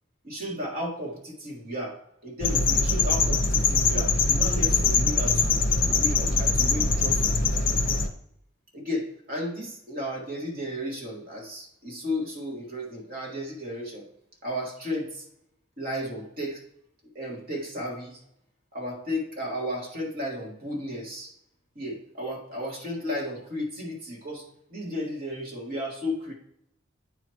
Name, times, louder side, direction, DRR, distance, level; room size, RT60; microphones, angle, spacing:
voice 1, 0.2-5.6 5.9-7.3 8.7-14.1 14.4-15.3 15.8-16.6 17.2-18.2 18.7-21.3 21.8-26.3, left 1 dB, 45° right, -1 dB, 1.7 m, -34 dB
sound 1, 2.4-8.1, left 4 dB, 45° left, 0.7 m, -23 dB
9.0 x 3.0 x 4.5 m, 0.75 s
head